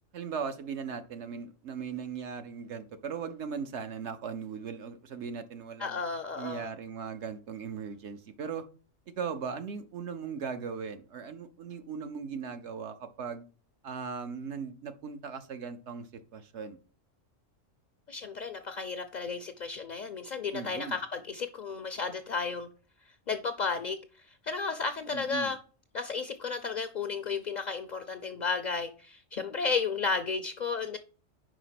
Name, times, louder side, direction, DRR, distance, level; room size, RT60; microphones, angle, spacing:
voice 1, 0.1-6.0 6.4-8.7 9.1-13.4 13.8-16.8 20.5-21.0 25.1-25.5, right 6 dB, 65° right, 1.0 m, -38 dB
voice 2, 5.8-6.7 18.1-22.7 23.3-24.0 24.2-25.6 25.9-31.0, left 4 dB, 55° left, 0.5 m, -33 dB
5.1 x 5.0 x 5.7 m
omnidirectional pair, 1.3 m